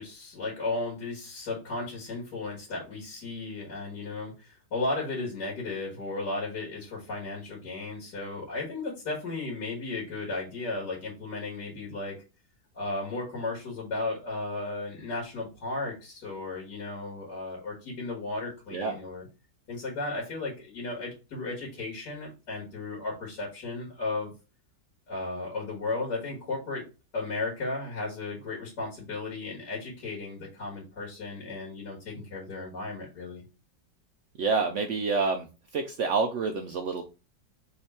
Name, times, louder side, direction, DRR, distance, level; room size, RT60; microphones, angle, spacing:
voice 1, 0.0-12.2 12.7-19.3 19.7-24.3 25.1-26.9 27.1-33.4, left 3 dB, 65° left, -5 dB, 2.2 m, -35 dB
voice 2, 34.4-35.5 35.7-37.0, right 4 dB, 85° right, 4 dB, 0.6 m, -28 dB
3.7 x 3.3 x 4.2 m, 0.30 s
omnidirectional pair, 1.9 m